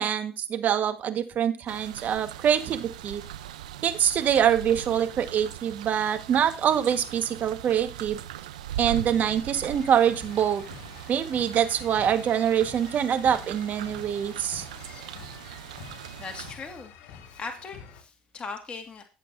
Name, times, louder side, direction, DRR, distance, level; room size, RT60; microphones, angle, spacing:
voice 1, 0.0-3.2 3.8-8.2 8.8-10.6 11.1-14.7, right 9 dB, 50° right, 9 dB, 1.5 m, -25 dB
sound 1, 1.7-16.5, right 11 dB, 90° right, 0.6 m, -40 dB
sound 2, 9.5-18.0, left 7 dB, 70° left, 1.9 m, -47 dB
voice 2, 14.8-15.3 15.7-15.9 16.2-17.0 17.3-19.0, left 4 dB, 30° left, 3 dB, 2.0 m, -40 dB
15.5 x 7.4 x 2.7 m, 0.32 s
hypercardioid pair, 70°, 4 cm